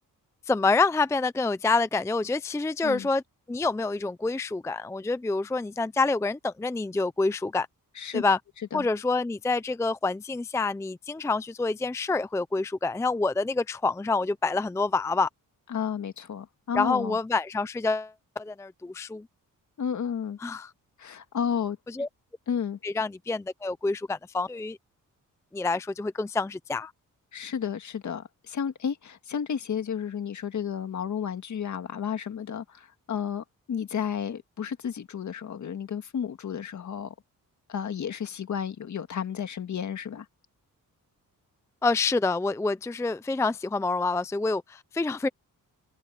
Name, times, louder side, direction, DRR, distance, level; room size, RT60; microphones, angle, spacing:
voice 1, 0.5-3.2 3.5-7.7 8.1-8.4 8.7-15.3 16.7-19.3 20.4-20.7 21.9-22.1 22.8-24.8 25.5-26.9 41.8-45.3, left 3 dB, 10° left, 0.4 m, -27 dB
voice 2, 15.7-17.2 19.8-20.4 21.0-21.8 22.5-22.8 27.3-37.1 37.7-40.2, left 8 dB, 60° left, 1.9 m, -32 dB
wide cardioid pair, 140°, 34 cm